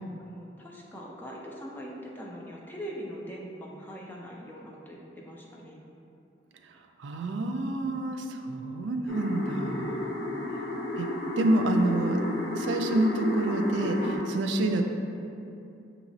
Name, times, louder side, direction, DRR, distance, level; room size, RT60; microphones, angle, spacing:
voice 1, 0.2-5.8, equal, 10° left, -3 dB, 0.4 m, -42 dB
voice 2, 7.0-10.1 11.0-11.1 11.4-12.2 12.5-14.8, right 2 dB, 90° right, 5 dB, 0.4 m, -27 dB
sound 1, 9.1-14.2, left 1 dB, 65° left, 0.8 m, -32 dB
5.8 x 2.9 x 2.7 m, 2.7 s
head